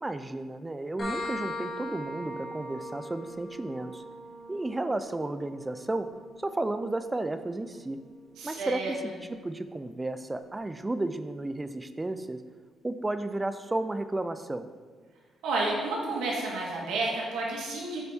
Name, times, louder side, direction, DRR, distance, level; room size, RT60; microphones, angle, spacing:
voice 1, 0.0-4.0 4.5-6.1 6.4-8.0 8.4-9.0 9.3-12.4 12.8-14.7, right 2 dB, 15° right, 11 dB, 0.4 m, -33 dB
sound 1, 1.0-8.4, left 1 dB, 40° left, 1.9 m, -41 dB
voice 2, 8.4-8.9 15.4-18.0, right 2 dB, 85° right, -3 dB, 1.6 m, -30 dB
8.5 x 4.2 x 3.5 m, 1.5 s
cardioid pair, 90°, 0 cm